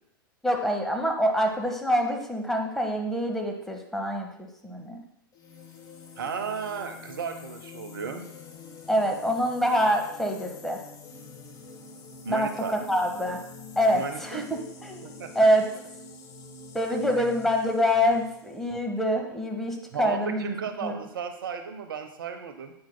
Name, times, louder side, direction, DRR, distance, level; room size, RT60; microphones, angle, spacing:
voice 1, 0.4-5.0 8.9-10.8 12.3-13.4 13.8-14.4 14.8-15.6 16.7-20.5 20.8-20.9, equal, ahead, 2 dB, 1.3 m, -25 dB
sound 1, 5.3-18.7, left 4 dB, 30° left, 1.2 m, -46 dB
voice 2, 6.2-8.3 12.2-12.8 13.9-14.4 15.0-15.5 17.2-17.3 19.9-22.7, right 6 dB, 70° right, 8 dB, 0.8 m, -34 dB
10.5 x 8.6 x 2.2 m, 0.78 s
figure-of-eight pair, 95°, 12 cm